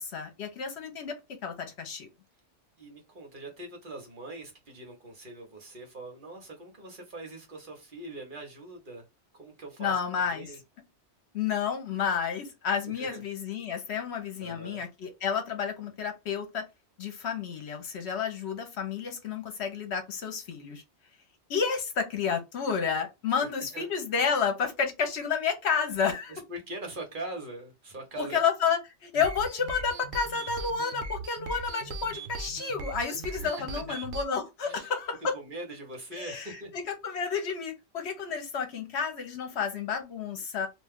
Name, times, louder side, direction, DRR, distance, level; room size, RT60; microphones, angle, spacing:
voice 1, 0.0-2.1 9.8-10.5 11.3-16.7 17.0-20.8 21.5-26.4 28.2-35.3 36.1-40.7, left 6 dB, 70° left, 1.0 m, -31 dB
voice 2, 2.8-9.0 9.3-10.6 13.0-13.2 14.4-14.8 23.7-23.9 26.3-28.4 33.3-33.5 33.9-34.0 34.6-34.9 35.3-36.7, right 2 dB, 50° right, 1.0 m, -42 dB
sound 1, 29.1-34.3, right 2 dB, 85° right, 0.9 m, -39 dB
2.5 x 2.3 x 3.5 m
omnidirectional pair, 1.2 m